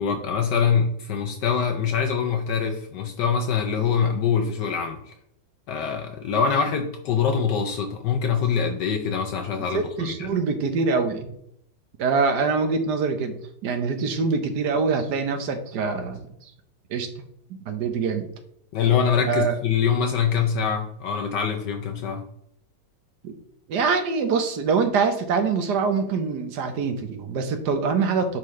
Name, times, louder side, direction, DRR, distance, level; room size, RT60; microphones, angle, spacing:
voice 1, 0.0-5.1 5.7-10.3 18.7-22.3, left 6 dB, 70° left, 4 dB, 1.2 m, -24 dB
voice 2, 9.7-11.3 12.0-13.4 13.6-16.5 16.9-17.1 17.6-18.3 19.3-19.5 23.2-23.3 23.7-28.4, right 5 dB, 65° right, 7 dB, 1.4 m, -24 dB
10.5 x 4.0 x 3.2 m, 0.73 s
omnidirectional pair, 2.1 m